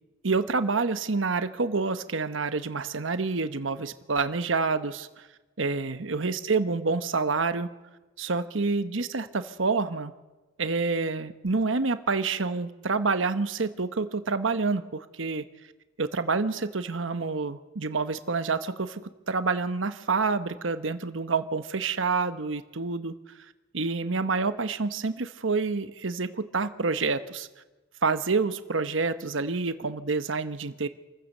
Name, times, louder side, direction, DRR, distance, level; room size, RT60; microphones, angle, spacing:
voice 1, 0.2-5.1 5.6-7.7 8.2-10.1 10.6-15.4 16.0-23.1 23.7-27.5 28.0-30.9, right 4 dB, 85° right, 11 dB, 1.1 m, -28 dB
27.0 x 15.0 x 6.6 m, 1.2 s
head